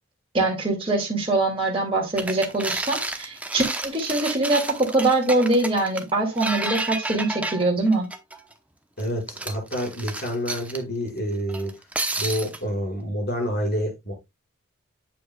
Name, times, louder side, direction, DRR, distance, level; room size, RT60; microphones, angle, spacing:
voice 1, 0.3-8.1, right 2 dB, 25° right, 2.1 m, -23 dB
sound 1, 2.2-8.5 9.0-10.8 11.5-12.6, right 2 dB, 5° right, 0.8 m, -31 dB
voice 2, 9.0-11.7 12.2-14.1, equal, 50° left, 5.2 m, -28 dB
8.5 x 7.4 x 2.3 m
head